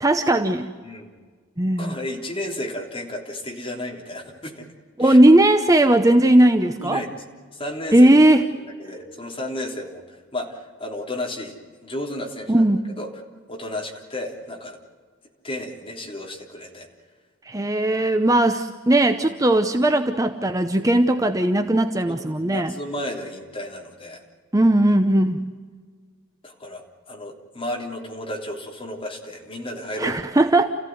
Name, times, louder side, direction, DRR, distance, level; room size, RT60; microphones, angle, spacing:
voice 1, 0.0-0.7 1.6-2.0 5.0-7.0 7.9-8.5 12.5-12.8 17.5-22.7 24.5-25.4 30.0-30.7, right 1 dB, 15° right, 7 dB, 0.8 m, -17 dB
voice 2, 1.8-4.7 5.0-5.2 6.8-7.1 7.5-8.1 8.7-12.6 13.0-13.1 13.5-14.8 15.4-16.9 22.1-24.2 26.4-30.2, left 1 dB, 25° left, 0 dB, 3.4 m, -33 dB
29.5 x 15.5 x 9.4 m, 1.6 s
head